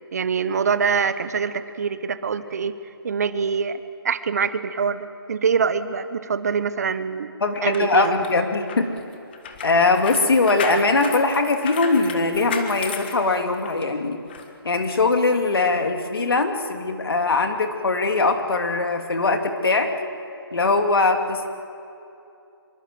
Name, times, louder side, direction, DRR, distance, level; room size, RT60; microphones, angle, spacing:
voice 1, 0.1-2.8 3.0-3.8 4.0-7.3 7.6-8.2, right 6 dB, 40° right, 13 dB, 1.1 m, -24 dB
voice 2, 7.4-8.9 9.6-14.2 14.6-19.9 20.5-21.5, left 3 dB, 65° left, 5 dB, 2.8 m, -21 dB
sound 1, 7.6-13.8 14.3-14.5, left 6 dB, 25° left, 1.5 m, -34 dB
25.5 x 23.5 x 7.8 m, 2.7 s
hypercardioid pair, 165°, 13 cm